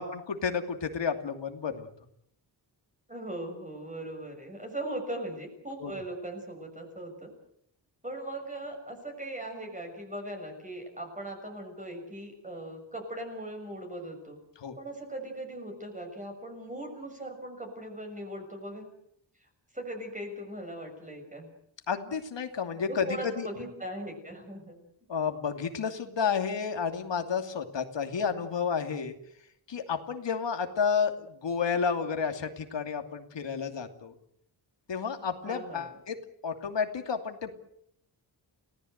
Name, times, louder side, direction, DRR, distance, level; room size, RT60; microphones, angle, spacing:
voice 1, 0.0-1.9 5.8-6.0 14.6-14.8 21.9-23.5 25.1-29.1 29.7-34.1 34.9-36.2 36.4-37.5, left 6 dB, 80° left, 6 dB, 2.8 m, -31 dB
voice 2, 3.1-7.3 8.0-14.4 14.8-18.9 19.4-19.5 19.7-21.5 22.8-24.8 35.4-36.0, right 1 dB, 15° right, 2 dB, 6.6 m, -39 dB
30.0 x 18.0 x 8.1 m, 0.71 s
wide cardioid pair, 140°, 43 cm